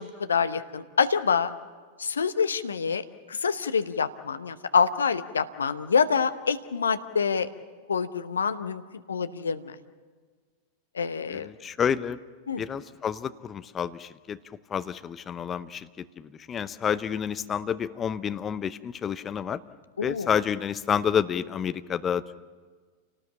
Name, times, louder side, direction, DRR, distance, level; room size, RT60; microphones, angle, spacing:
voice 1, 0.0-1.5 2.0-7.5 7.9-8.8 9.1-9.7 10.9-11.5 12.5-12.6 20.0-20.3, left 6 dB, 70° left, 11 dB, 0.9 m, -26 dB
voice 2, 11.3-12.2 12.6-14.4 14.7-19.6 20.0-22.4, left 8 dB, 25° left, 13 dB, 0.7 m, -29 dB
28.5 x 18.5 x 7.4 m, 1.5 s
figure-of-eight pair, 90°, 0 cm